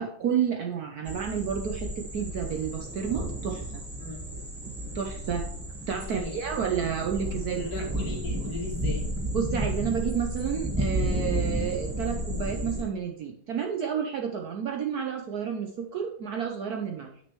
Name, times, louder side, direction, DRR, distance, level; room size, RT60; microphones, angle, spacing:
voice 1, 0.0-3.8 4.6-5.5 5.9-7.6 9.3-17.1, right 7 dB, 65° right, 2 dB, 1.1 m, -30 dB
sound 1, 1.0-12.8, equal, 10° right, 0.8 m, -32 dB
voice 2, 5.9-6.4 7.6-9.1, left 2 dB, 50° left, -1 dB, 2.3 m, -37 dB
8.5 x 6.4 x 3.1 m, 0.67 s
omnidirectional pair, 2.1 m